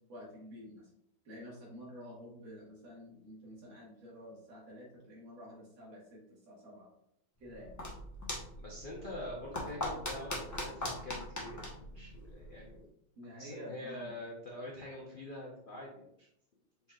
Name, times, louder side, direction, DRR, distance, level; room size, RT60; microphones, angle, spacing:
voice 1, 0.1-0.8 1.3-6.9 7.4-7.7 13.2-14.1, equal, 80° right, -4 dB, 2.4 m, -50 dB
sound 1, 7.4-12.8, left 1 dB, 25° left, 0.4 m, -41 dB
voice 2, 8.6-12.9 13.4-16.3, left 1 dB, 90° left, -3 dB, 0.4 m, -45 dB
5.0 x 4.3 x 2.3 m, 0.75 s
omnidirectional pair, 2.1 m